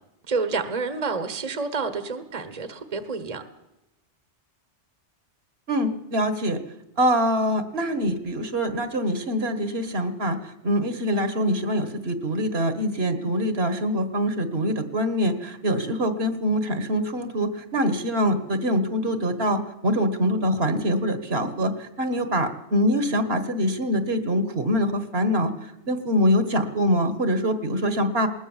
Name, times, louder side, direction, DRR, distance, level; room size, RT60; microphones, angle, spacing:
voice 1, 0.3-3.4, right 4 dB, 35° right, 10 dB, 1.3 m, -29 dB
voice 2, 5.7-6.6 7.0-28.3, equal, 55° right, 10 dB, 1.7 m, -24 dB
20.0 x 19.5 x 7.2 m, 0.92 s
omnidirectional pair, 1.2 m